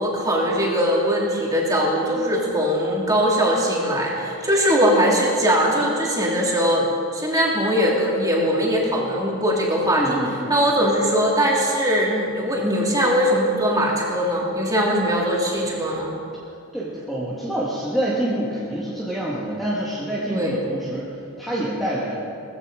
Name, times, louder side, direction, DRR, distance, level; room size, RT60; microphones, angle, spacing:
voice 1, 0.0-10.2 10.5-16.1 20.3-20.6, equal, 15° right, -3 dB, 3.1 m, -21 dB
voice 2, 10.0-10.6 16.7-21.1 21.4-22.1, right 1 dB, ahead, -7 dB, 1.9 m, -26 dB
19.0 x 15.0 x 5.1 m, 2.5 s
head